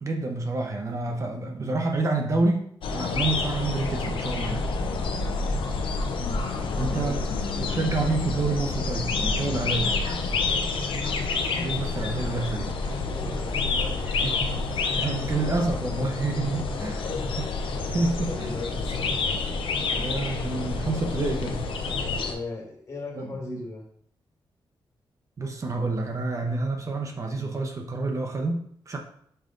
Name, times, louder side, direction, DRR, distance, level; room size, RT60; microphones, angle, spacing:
voice 1, 0.0-4.6 6.8-7.2 7.6-9.9 11.6-12.7 14.1-17.1 17.4-17.5 17.8-18.5 19.9-21.6 23.2-23.6 25.4-29.0, right 3 dB, 35° right, 3 dB, 0.8 m, -28 dB
sound 1, 2.8-22.4, left 3 dB, 80° left, 0.8 m, -28 dB
voice 2, 6.5-7.2 7.5-7.8 10.2-10.8 13.0-14.0 17.0-17.4 18.3-19.4 22.1-23.8, left 3 dB, 40° left, 0 dB, 1.9 m, -38 dB
Gasp, 9.8-10.2 10.8-11.4 11.8-14.3 14.8-15.9 16.5-16.6, right 1 dB, 65° right, 1.6 m, -46 dB
5.5 x 5.1 x 3.8 m, 0.65 s
wide cardioid pair, 150°, 9 cm